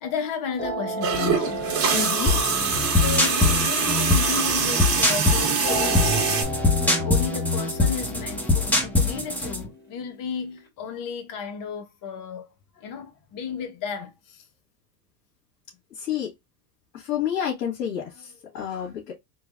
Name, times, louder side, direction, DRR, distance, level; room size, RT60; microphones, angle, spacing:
voice 1, 0.0-1.8 2.9-6.5 6.8-12.5 12.8-14.5, left 7 dB, 40° left, 1.2 m, -33 dB
sound 1, 0.6-5.0 5.6-10.6, right 2 dB, 20° left, 2.7 m, -35 dB
sound 2, 1.0-6.4, right 6 dB, 30° right, 1.7 m, -24 dB
voice 2, 1.9-2.4 16.0-16.3 16.9-19.1, left 9 dB, 70° left, 2.0 m, -29 dB
sound 3, 2.3-9.7, left 3 dB, 5° left, 1.3 m, -23 dB
3.8 x 3.4 x 2.5 m
hypercardioid pair, 110°, 48 cm